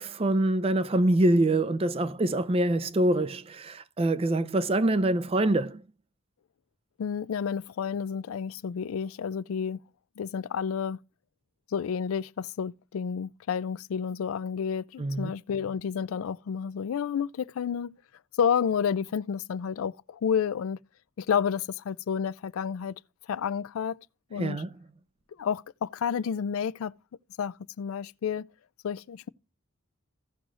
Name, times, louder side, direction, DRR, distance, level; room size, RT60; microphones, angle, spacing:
voice 1, 0.0-5.8 15.0-15.3 24.4-24.8, right 1 dB, 30° right, 0.5 m, -25 dB
voice 2, 7.0-9.8 10.2-11.0 11.7-17.9 18.4-20.8 21.2-23.0 23.3-24.0 24.3-24.6 25.4-26.9 27.4-28.5 28.8-29.3, left 7 dB, 80° left, 0.4 m, -30 dB
16.5 x 6.2 x 2.4 m
head